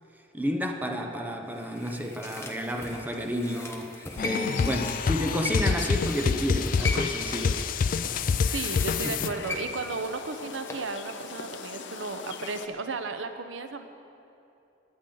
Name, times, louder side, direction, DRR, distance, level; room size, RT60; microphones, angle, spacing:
voice 1, 0.3-7.6 9.0-9.3, equal, 10° right, 3 dB, 0.7 m, -31 dB
sound 1, 1.5-10.9 11.2-11.3, left 2 dB, 15° left, 1.0 m, -39 dB
sound 2, 4.2-9.3, left 5 dB, 45° left, 0.3 m, -27 dB
sound 3, 4.3-12.7, left 6 dB, 65° left, 0.7 m, -42 dB
voice 2, 8.5-13.9, right 4 dB, 75° right, 8 dB, 0.7 m, -34 dB
17.5 x 10.0 x 3.9 m, 2.8 s
head